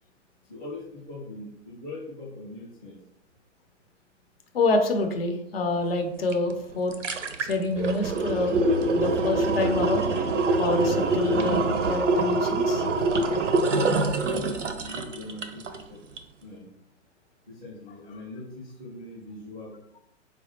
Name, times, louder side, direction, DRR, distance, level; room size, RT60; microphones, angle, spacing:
voice 1, 0.5-3.0 13.7-16.0 16.4-16.7 17.5-20.0, left 2 dB, ahead, -9 dB, 0.3 m, -41 dB
voice 2, 4.5-6.9 7.4-8.6 8.9-10.1 10.6-12.8, left 2 dB, 55° left, 4 dB, 0.6 m, -27 dB
sound 1, 6.3-6.4 6.7-15.8 16.2-16.3, right 2 dB, 75° right, 0.5 m, -25 dB
4.1 x 2.2 x 2.9 m, 0.82 s
figure-of-eight pair, 115°, 37 cm